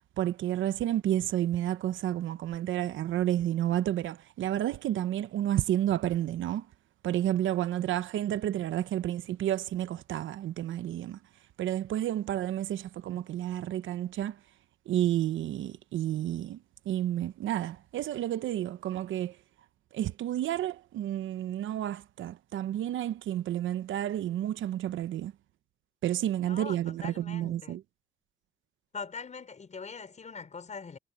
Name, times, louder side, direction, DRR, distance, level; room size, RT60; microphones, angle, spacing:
voice 1, 0.2-6.7 7.0-11.2 11.6-14.4 14.9-16.6 16.9-19.3 19.9-25.3 26.0-27.8, right 12 dB, 75° right, 1.0 m, -30 dB
voice 2, 26.4-27.8 28.9-31.0, left 5 dB, 35° left, 5.1 m, -42 dB
cardioid pair, 90°, 20 cm